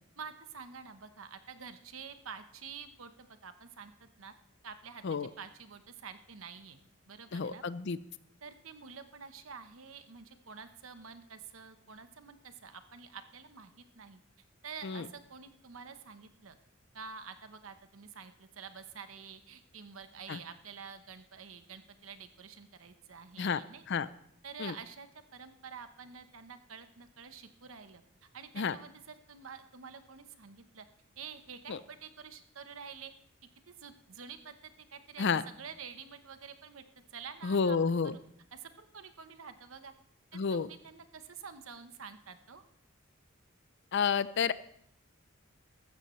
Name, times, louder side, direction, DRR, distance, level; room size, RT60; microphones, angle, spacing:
voice 1, 0.2-4.3 4.6-6.8 7.1-7.6 8.4-14.2 14.6-16.6 16.9-23.8 24.4-28.0 28.3-30.9 31.2-33.1 33.7-34.6 34.9-36.8 37.1-38.2 38.5-39.9 40.3-42.6, right 6 dB, 90° right, 9 dB, 1.0 m, -48 dB
voice 2, 7.3-8.0 14.8-15.1 20.3-20.4 23.4-23.6 23.9-24.1 24.6-24.7 28.6-28.7 31.7-31.8 35.2-35.4 37.4-38.1 40.3-40.7 43.9-44.5, left 5 dB, 60° left, 16 dB, 0.5 m, -30 dB
15.0 x 13.5 x 3.2 m, 0.70 s
head